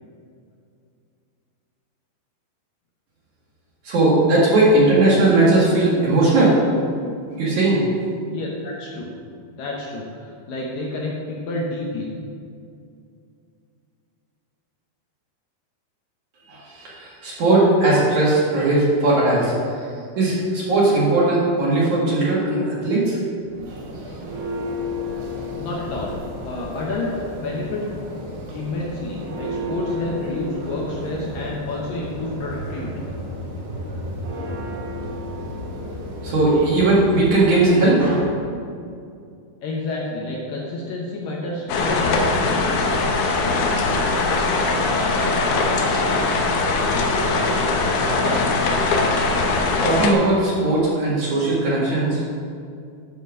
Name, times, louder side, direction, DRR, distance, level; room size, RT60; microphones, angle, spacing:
voice 1, 3.8-6.6 7.4-7.8 16.5-19.9 20.2-23.2 23.7-24.4 36.2-38.5 48.2-48.5 48.9-49.0 49.8-52.2, right 2 dB, 55° right, -7 dB, 2.8 m, -18 dB
voice 2, 8.3-9.1 9.5-12.1 25.6-26.1 26.4-27.8 28.5-33.0 39.6-42.9, left 2 dB, 70° left, -3 dB, 2.3 m, -29 dB
Church bell, 23.4-37.7, left 1 dB, 75° right, 3.7 m, -32 dB
sound 1, 41.7-50.1, left 3 dB, 90° left, 1.7 m, -21 dB
10.5 x 4.5 x 6.2 m, 2.4 s
omnidirectional pair, 4.7 m